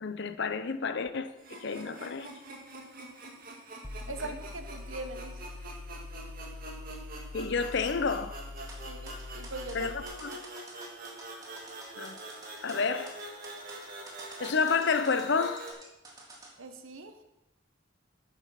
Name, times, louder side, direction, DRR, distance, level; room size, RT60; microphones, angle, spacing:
voice 1, 0.0-2.3 4.2-4.4 7.3-8.4 9.7-10.3 12.0-12.2 12.6-13.2 14.4-15.8, left 5 dB, 60° left, 0.6 m, -30 dB
sound 1, 1.4-15.7, right 2 dB, 45° right, 1.8 m, -45 dB
sound 2, 3.8-10.0, left 3 dB, 20° left, 0.7 m, -44 dB
voice 2, 4.1-5.4 8.9-9.9 16.6-17.2, right 3 dB, 90° right, 1.2 m, -41 dB
sound 3, 8.6-16.5, right 2 dB, 20° right, 1.9 m, -49 dB
9.1 x 7.8 x 5.8 m
head